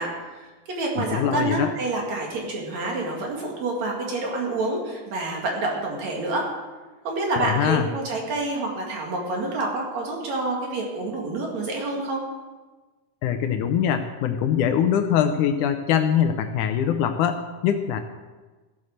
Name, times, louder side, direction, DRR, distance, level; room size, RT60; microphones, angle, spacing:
voice 1, 0.0-6.5 7.1-12.2, right 2 dB, 55° right, -1 dB, 3.3 m, -28 dB
voice 2, 1.0-1.7 7.4-7.9 13.2-18.0, left 8 dB, 75° left, 7 dB, 2.0 m, -23 dB
15.0 x 8.3 x 6.5 m, 1.3 s
omnidirectional pair, 3.9 m